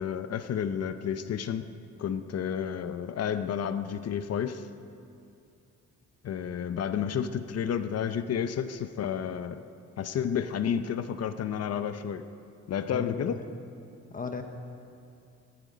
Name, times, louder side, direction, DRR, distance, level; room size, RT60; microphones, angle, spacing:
voice 1, 0.0-1.7 2.0-4.6 6.2-9.6 10.0-12.2 12.7-13.4, left 8 dB, 55° left, 10 dB, 0.7 m, -31 dB
voice 2, 12.9-13.4 14.1-14.4, left 4 dB, 30° left, 5 dB, 0.9 m, -36 dB
16.5 x 14.5 x 5.1 m, 2.5 s
wide cardioid pair, 150°, 30 cm